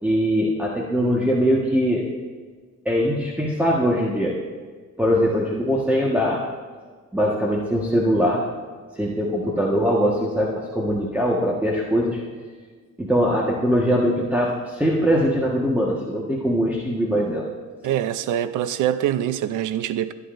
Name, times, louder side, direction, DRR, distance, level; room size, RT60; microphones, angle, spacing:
voice 1, 0.0-2.1 2.8-4.4 5.0-6.4 7.1-8.4 8.9-12.2 13.0-17.5, equal, 5° right, 1.5 m, -21 dB
voice 2, 17.8-20.1, right 11 dB, 85° right, 0.6 m, -24 dB
24.0 x 9.3 x 2.6 m
cardioid pair, 90°, 30 cm